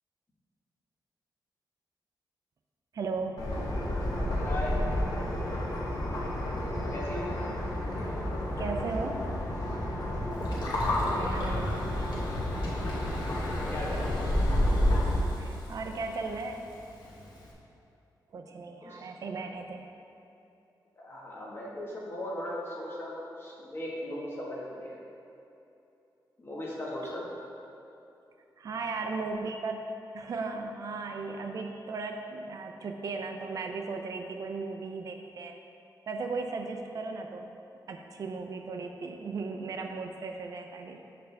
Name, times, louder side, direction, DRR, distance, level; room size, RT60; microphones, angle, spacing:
voice 1, 2.9-3.4 8.6-9.3 11.1-12.1 15.4-16.7 18.3-19.9 27.0-27.1 28.6-29.9 30.1-35.6 36.1-37.6 37.9-41.0, right 4 dB, 50° right, 4 dB, 0.4 m, -36 dB
sound 1, 3.4-15.1, left 1 dB, 55° left, 1.3 m, -30 dB
voice 2, 4.4-4.8 6.9-7.3 10.7-11.4 13.7-14.2 18.8-19.1 21.0-25.0 26.4-27.3, left 1 dB, 30° left, -5 dB, 1.4 m, -38 dB
Gurgling, 10.3-17.5, left 1 dB, 85° left, 1.3 m, -38 dB
6.7 x 6.5 x 3.4 m, 2.8 s
wide cardioid pair, 140°, 8 cm